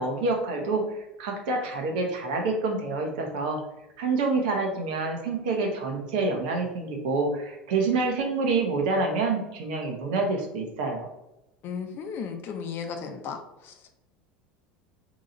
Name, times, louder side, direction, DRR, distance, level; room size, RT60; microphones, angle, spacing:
voice 1, 0.0-3.6 4.0-11.1, right 3 dB, 65° right, 2 dB, 0.9 m, -27 dB
voice 2, 11.6-14.0, left 6 dB, 45° left, 5 dB, 0.6 m, -35 dB
3.8 x 3.0 x 3.8 m, 0.93 s
figure-of-eight pair, 75°, 5 cm